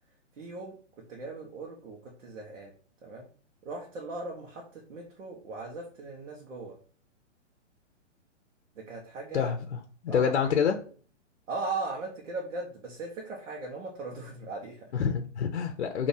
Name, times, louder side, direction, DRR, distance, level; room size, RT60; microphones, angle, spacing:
voice 1, 0.4-2.7 3.0-3.3 3.6-6.8 8.7-9.5 10.1-10.3 10.7-10.8 11.5-14.9, right 3 dB, 75° right, -1 dB, 1.3 m, -38 dB
voice 2, 10.0-10.8 14.9-16.1, left 7 dB, 60° left, 5 dB, 0.6 m, -26 dB
5.4 x 2.9 x 2.7 m, 0.42 s
hypercardioid pair, 170°, 37 cm